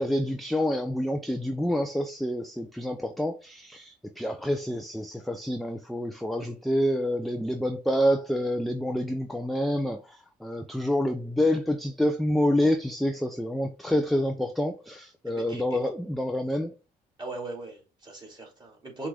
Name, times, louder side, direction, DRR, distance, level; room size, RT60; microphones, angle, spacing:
voice 1, 0.0-16.7, equal, ahead, 0.5 m, -27 dB
voice 2, 15.3-15.8 17.2-19.1, right 2 dB, 25° right, 2.4 m, -39 dB
5.9 x 2.6 x 3.3 m
cardioid pair, 90°, 20 cm